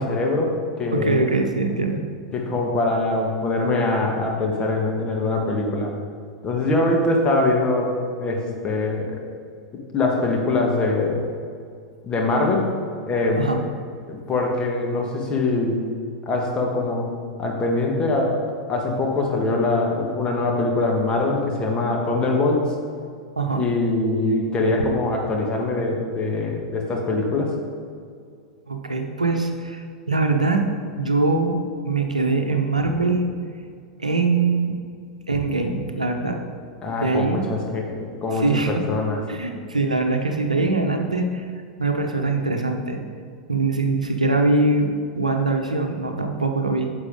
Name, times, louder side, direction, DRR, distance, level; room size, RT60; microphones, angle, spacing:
voice 1, 0.0-1.3 2.3-5.9 6.4-7.9 8.2-9.2 9.9-11.2 12.0-12.7 13.1-13.5 14.1-15.8 16.2-17.1 17.4-22.7 23.5-27.5 36.8-39.2, left 2 dB, 25° left, 0 dB, 1.5 m, -23 dB
voice 2, 0.9-2.0 13.3-13.6 23.4-23.6 28.7-30.6 31.0-31.6 31.8-33.3 34.0-34.8 35.3-36.4 37.0-37.4 38.3-38.7 39.3-41.4 41.8-43.0 43.5-46.9, right 3 dB, 80° right, 4 dB, 0.8 m, -22 dB
9.7 x 6.8 x 3.7 m, 2.2 s
figure-of-eight pair, 90°, 4 cm